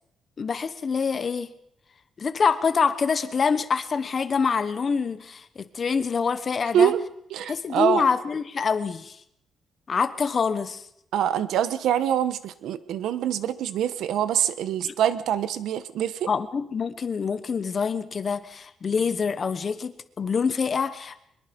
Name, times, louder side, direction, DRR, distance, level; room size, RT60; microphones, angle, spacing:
voice 1, 0.4-1.5 2.2-6.9 7.5-9.2 9.9-10.8 14.8-14.9 16.3-21.2, left 5 dB, 35° left, 12 dB, 1.2 m, -26 dB
voice 2, 7.3-8.0 11.1-16.3, right 10 dB, 90° right, 13 dB, 1.3 m, -24 dB
23.5 x 21.5 x 5.4 m, 0.75 s
cardioid pair, 160°, 0 cm